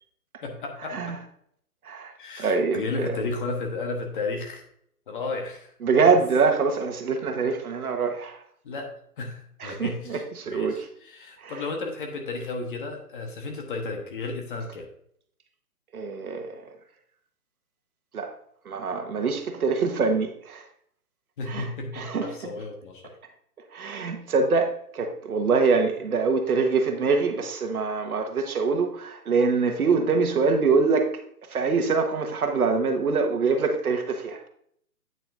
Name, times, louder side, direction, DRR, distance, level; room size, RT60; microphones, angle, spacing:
voice 1, 0.4-1.1 2.2-4.6 5.1-6.1 8.6-8.9 9.2-10.2 10.5-14.9 21.4-23.0, left 3 dB, 35° left, 1.3 m, -33 dB
voice 2, 1.8-3.1 5.8-8.4 9.6-10.9 11.4-11.6 15.9-16.7 18.1-18.3 18.6-20.7 21.5-22.5 23.7-31.2 31.5-34.5, right 4 dB, 70° right, 1.3 m, -24 dB
9.0 x 5.7 x 2.6 m
hypercardioid pair, 150°, 46 cm